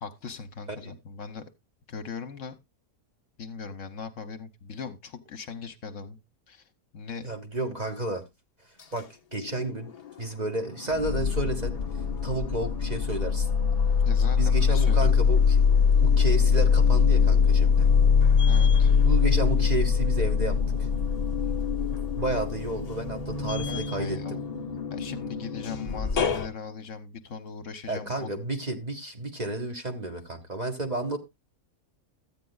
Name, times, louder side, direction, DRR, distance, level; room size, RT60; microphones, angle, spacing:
voice 1, 0.0-1.4 1.9-2.5 3.4-6.2 6.5-6.6 6.9-7.3 14.0-15.1 18.5-18.9 23.7-24.4 24.9-28.4, left 5 dB, 60° left, 1.2 m, -39 dB
voice 2, 7.2-8.2 8.9-9.9 10.2-11.8 12.2-13.5 14.4-15.6 16.0-17.9 19.0-20.9 22.2-24.4 27.9-31.2, right 2 dB, 30° right, 1.2 m, -31 dB
sound 1, 9.4-10.2 10.6-26.5, left 6 dB, 40° left, 0.6 m, -23 dB
14.0 x 9.0 x 2.3 m
omnidirectional pair, 1.5 m